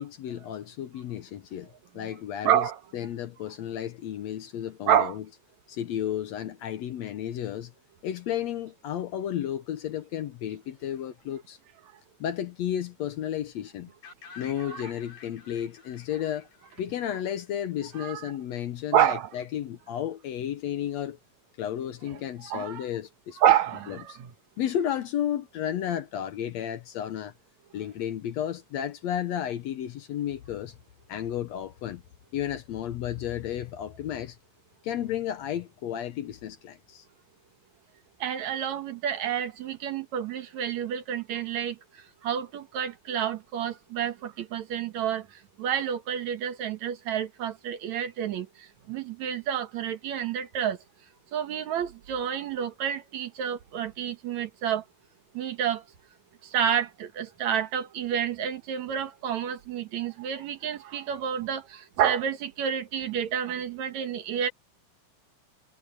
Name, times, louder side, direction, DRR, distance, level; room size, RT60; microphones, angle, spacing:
voice 1, 0.0-1.7 1.9-5.4 5.7-7.7 8.0-11.6 12.2-13.9 14.4-16.5 16.8-21.2 21.6-24.2 24.6-27.3 27.7-30.7 31.1-32.0 32.3-34.4 34.8-37.0, left 10 dB, 70° left, 1.8 m, -33 dB
voice 2, 2.4-2.8 4.9-5.2 14.7-14.8 18.0-18.2 18.9-19.3 22.5-22.8 23.4-24.3 38.2-41.7 42.2-45.2 45.6-48.5 48.9-50.8 51.3-54.8 55.4-55.8 56.5-61.6 62.0-64.5, right 9 dB, 65° right, 2.5 m, -28 dB
sound 1, 14.0-17.9, left 6 dB, 90° left, 5.9 m, -50 dB
omnidirectional pair, 3.6 m